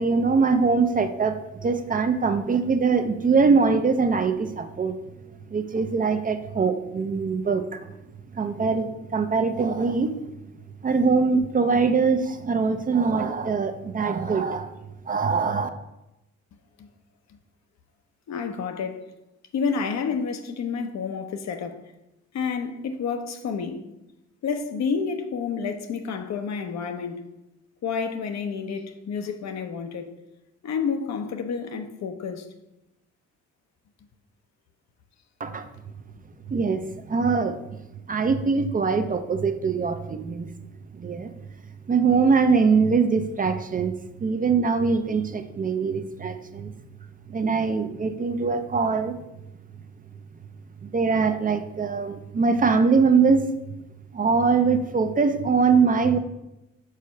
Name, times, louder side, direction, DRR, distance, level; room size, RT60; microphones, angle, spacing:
voice 1, 0.0-4.9 5.5-7.9 8.3-10.1 10.8-14.7 15.1-15.7 35.4-35.7 36.5-37.6 38.1-40.5 40.9-41.3 41.9-46.7 47.3-49.2 50.8-53.5 54.1-56.2, right 5 dB, 30° right, 0.5 m, -22 dB
voice 2, 18.3-19.0 19.5-21.8 22.3-23.8 24.4-27.3 27.8-30.1 30.6-32.5, left 5 dB, 60° left, 0.8 m, -29 dB
4.9 x 4.1 x 5.7 m
cardioid pair, 90°, 30 cm